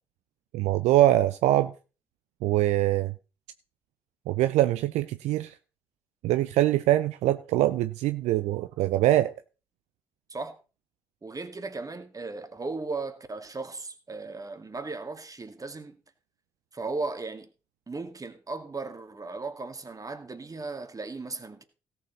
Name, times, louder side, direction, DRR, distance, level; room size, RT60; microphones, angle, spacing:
voice 1, 0.5-1.7 2.4-3.1 4.3-5.5 6.2-9.3, right 14 dB, 65° right, 0.5 m, -23 dB
voice 2, 11.2-16.0 16.7-17.5 17.9-21.6, right 3 dB, 30° right, 2.3 m, -36 dB
17.0 x 7.4 x 4.2 m
figure-of-eight pair, 45°, 13 cm